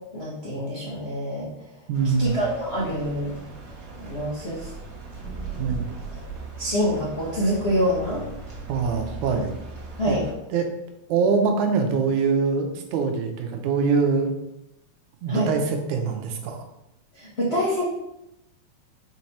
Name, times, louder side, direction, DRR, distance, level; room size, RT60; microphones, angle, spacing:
voice 1, 0.1-1.5 2.2-3.3 4.0-4.7 6.6-8.2 10.0-10.2 15.3-15.5 17.2-17.8, equal, 50° left, -6 dB, 0.7 m, -26 dB
sound 1, 1.9-10.3, right 3 dB, 35° right, 1.7 m, -38 dB
voice 2, 1.9-2.4 5.6-5.9 8.7-9.6 10.1-10.2 10.5-10.7 11.1-14.3 15.2-16.6, right 5 dB, 90° right, 4 dB, 2.3 m, -23 dB
5.7 x 4.6 x 4.2 m, 0.87 s
omnidirectional pair, 3.3 m